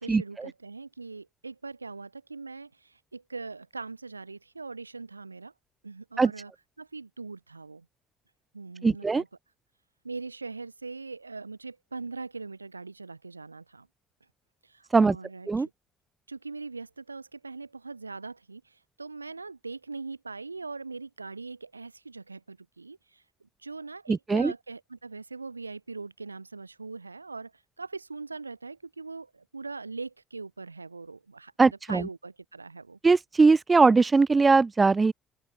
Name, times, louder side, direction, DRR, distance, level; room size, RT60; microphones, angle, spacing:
voice 1, 0.0-2.7 3.1-5.5 5.8-6.5 6.8-7.8 8.5-9.3 10.0-13.8 15.0-15.5 16.3-18.6 19.0-23.0 23.6-27.5 27.8-29.3 29.5-33.0, right 4 dB, 85° right, 2.2 m, -41 dB
voice 2, 8.8-9.2 14.9-15.2 15.5-15.7 24.1-24.5 31.6-32.0 33.0-35.1, right 4 dB, 25° right, 0.5 m, -20 dB
open air
figure-of-eight pair, 50°, 0 cm